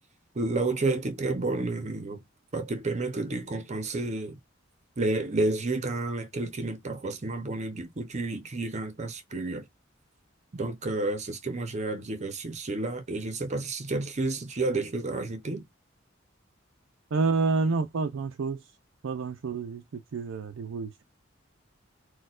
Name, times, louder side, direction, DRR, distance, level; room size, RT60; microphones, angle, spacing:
voice 1, 0.4-2.2 2.5-4.4 5.0-9.6 10.5-15.7, right 2 dB, 35° right, 0.6 m, -30 dB
voice 2, 17.1-18.6 19.0-21.0, right 4 dB, 85° right, 0.4 m, -29 dB
4.2 x 2.2 x 2.3 m
head